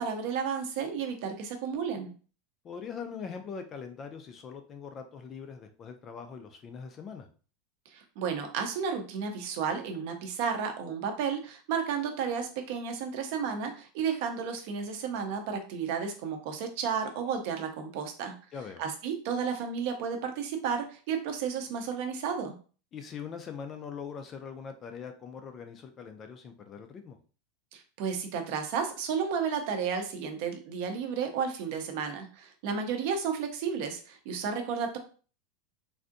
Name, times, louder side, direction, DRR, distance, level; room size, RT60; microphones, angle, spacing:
voice 1, 0.0-2.1 7.9-18.3 18.8-22.5 27.7-35.0, right 6 dB, 45° right, 5 dB, 0.6 m, -32 dB
voice 2, 2.6-7.3 18.5-18.8 22.9-27.2, left 6 dB, 20° left, 7 dB, 0.3 m, -42 dB
3.4 x 2.5 x 2.5 m, 0.38 s
supercardioid pair, 175°, 0 cm